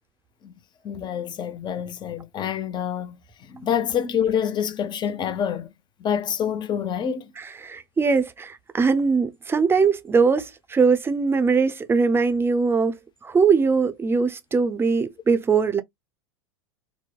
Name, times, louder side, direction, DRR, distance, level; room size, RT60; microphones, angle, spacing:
voice 1, 0.8-5.7 6.0-7.3, left 8 dB, 30° left, 0.7 m, -27 dB
voice 2, 7.4-13.0 13.2-15.8, right 5 dB, 15° right, 0.6 m, -21 dB
4.4 x 2.1 x 2.3 m
hypercardioid pair, 100°, 15 cm